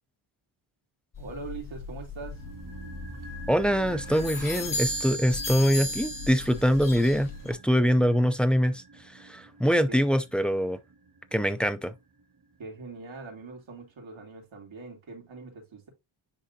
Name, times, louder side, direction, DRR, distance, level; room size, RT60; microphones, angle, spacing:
sound 1, 1.1-7.5, left 2 dB, 40° left, 1.5 m, -36 dB
voice 1, 1.2-2.4 9.9-10.0 12.6-15.9, right 3 dB, 65° right, 3.2 m, -42 dB
sound 2, 2.2-12.4 12.7-12.8, right 3 dB, 45° right, 1.2 m, -46 dB
voice 2, 3.5-10.8 11.3-11.9, equal, ahead, 0.4 m, -24 dB
9.9 x 3.8 x 2.7 m
wide cardioid pair, 140°, 50 cm